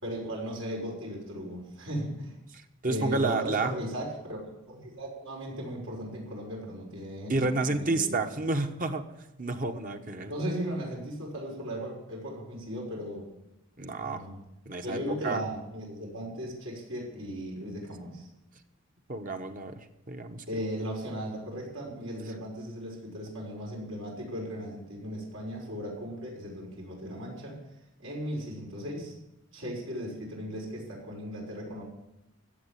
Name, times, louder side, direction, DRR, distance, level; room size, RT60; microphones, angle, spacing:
voice 1, 0.0-2.4 2.8-8.2 10.2-13.3 14.0-14.4 14.8-18.3 20.5-27.6 28.0-29.1 29.5-31.8, equal, 85° right, -2 dB, 6.0 m, -37 dB
voice 2, 2.8-3.7 7.3-9.1 9.4-10.3 13.8-14.3 14.7-15.4 19.1-20.4 21.9-22.0, right 3 dB, 40° right, 6 dB, 1.2 m, -30 dB
15.0 x 8.1 x 9.2 m, 0.91 s
head